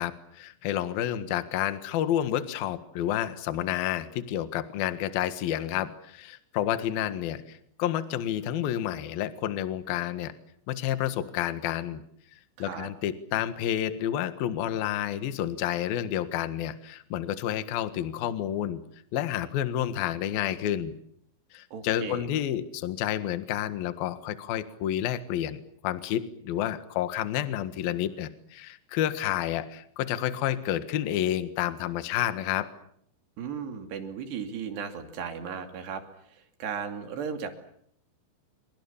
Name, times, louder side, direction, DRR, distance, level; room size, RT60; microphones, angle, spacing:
voice 1, 0.0-10.3 10.7-12.0 12.6-18.8 19.1-20.9 21.5-32.7, left 11 dB, 60° left, 11 dB, 2.8 m, -30 dB
voice 2, 12.6-12.9 21.7-22.3 33.4-36.0 36.3-37.5, right 7 dB, 60° right, 6 dB, 4.4 m, -36 dB
27.0 x 25.5 x 7.3 m, 0.67 s
omnidirectional pair, 5.9 m